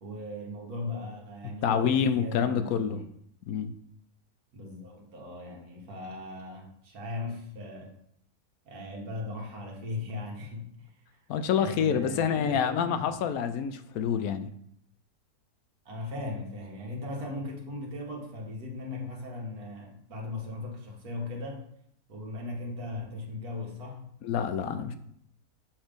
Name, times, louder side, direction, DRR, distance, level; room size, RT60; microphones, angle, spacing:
voice 1, 0.0-3.0 4.5-7.9 8.7-10.9 11.6-13.2 15.9-21.7 22.1-24.0, left 2 dB, 80° right, -1 dB, 1.9 m, -38 dB
voice 2, 1.6-3.0 3.5-3.7 11.3-14.5 24.2-25.0, left 7 dB, 75° left, 9 dB, 1.0 m, -27 dB
7.2 x 3.2 x 5.1 m, 0.71 s
omnidirectional pair, 1.6 m